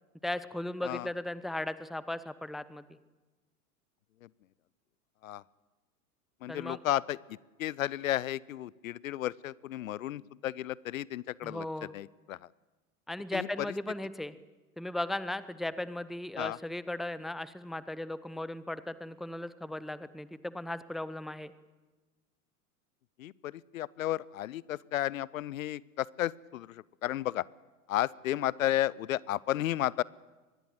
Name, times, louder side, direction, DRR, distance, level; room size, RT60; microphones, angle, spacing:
voice 1, 0.2-2.8 6.5-6.8 11.4-11.9 13.1-14.3 14.8-21.5, left 1 dB, ahead, 16 dB, 0.7 m, -37 dB
voice 2, 6.4-7.2 7.6-12.5 13.3-13.7 16.4-16.6 23.2-27.4 27.9-30.0, left 13 dB, 60° left, 24 dB, 0.7 m, -33 dB
24.0 x 20.5 x 7.9 m, 1.2 s
figure-of-eight pair, 90°, 46 cm